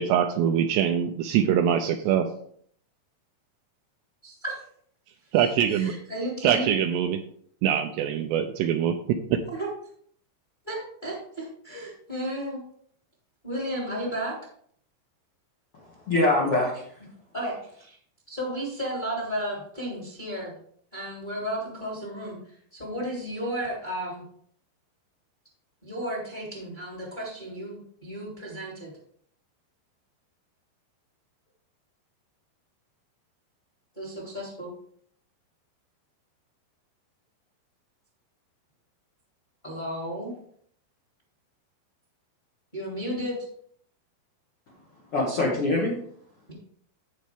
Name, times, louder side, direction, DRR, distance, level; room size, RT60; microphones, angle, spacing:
voice 1, 0.0-2.3 5.3-5.9 6.4-7.2 7.6-9.4, right 9 dB, 85° right, 7 dB, 2.5 m, -23 dB
voice 2, 4.2-4.6 5.7-6.7 9.5-9.7 10.6-12.6 13.4-14.3 17.3-18.0 18.3-20.5 20.9-22.4 22.7-24.2 25.8-28.9 33.9-34.7 39.6-40.3 42.7-43.3, right 1 dB, 15° left, -3 dB, 1.6 m, -33 dB
voice 3, 15.7-16.9 45.1-45.9, left 2 dB, 60° left, -3 dB, 1.4 m, -24 dB
15.5 x 5.2 x 3.6 m, 0.62 s
omnidirectional pair, 5.4 m